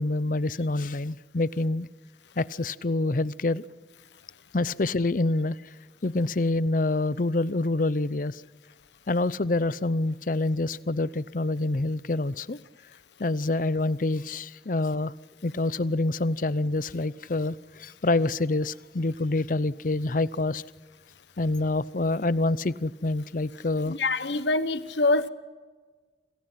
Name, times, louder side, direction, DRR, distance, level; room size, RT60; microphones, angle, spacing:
voice 1, 0.0-1.9 2.4-3.7 4.5-5.6 6.0-8.4 9.1-12.6 13.2-15.1 15.4-20.6 21.4-24.0, left 2 dB, 50° left, 18 dB, 0.7 m, -26 dB
voice 2, 23.9-25.3, left 2 dB, 80° left, 13 dB, 1.3 m, -25 dB
28.5 x 28.0 x 5.8 m, 1.4 s
head